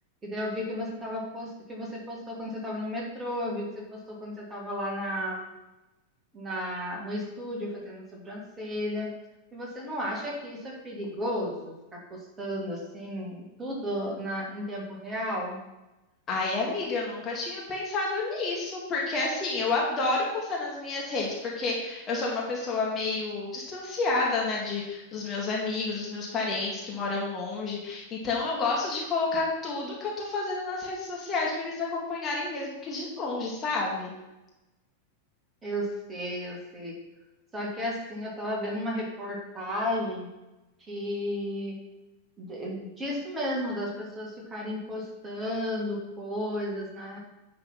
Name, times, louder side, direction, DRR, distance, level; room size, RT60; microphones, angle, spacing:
voice 1, 0.2-5.5 6.3-9.1 9.5-15.6 35.6-37.0 37.5-40.3 40.8-41.7 42.4-47.2, equal, 15° right, -3 dB, 2.5 m, -33 dB
voice 2, 16.3-34.1, left 3 dB, 25° left, -3 dB, 2.0 m, -30 dB
9.9 x 4.0 x 5.8 m, 1.0 s
figure-of-eight pair, 90°, 0 cm